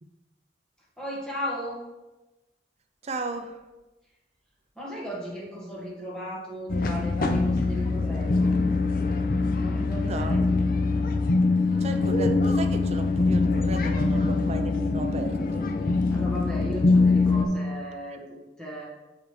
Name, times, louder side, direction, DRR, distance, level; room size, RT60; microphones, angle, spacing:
voice 1, 1.0-1.8 4.7-8.6 9.6-10.7 16.1-18.9, equal, 5° left, -5 dB, 1.4 m, -36 dB
voice 2, 3.0-3.6 10.0-10.7 11.8-15.7, right 2 dB, 35° right, 6 dB, 0.5 m, -35 dB
sound 1, 6.7-17.5, left 3 dB, 50° left, 0.5 m, -23 dB
6.8 x 4.9 x 3.1 m, 1.1 s
head